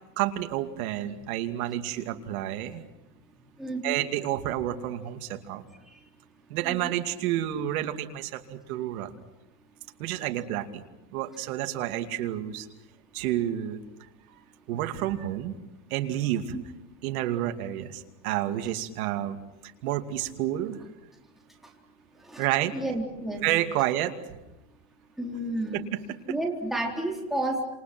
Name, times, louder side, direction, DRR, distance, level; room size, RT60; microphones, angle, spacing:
voice 1, 0.2-2.8 3.8-5.6 6.5-9.1 10.0-10.8 11.1-12.7 13.1-13.8 14.7-15.5 15.9-16.5 17.0-19.4 19.8-20.8 22.4-22.7 23.4-24.1, right 13 dB, 60° right, 6 dB, 2.6 m, -29 dB
voice 2, 3.6-4.0 5.8-6.1 6.6-6.9 21.6-21.7 22.2-22.4 22.7-23.4 25.2-25.8 26.3-27.6, right 1 dB, ahead, -1 dB, 3.8 m, -31 dB
28.5 x 27.5 x 6.1 m, 1.0 s
supercardioid pair, 145°, 48 cm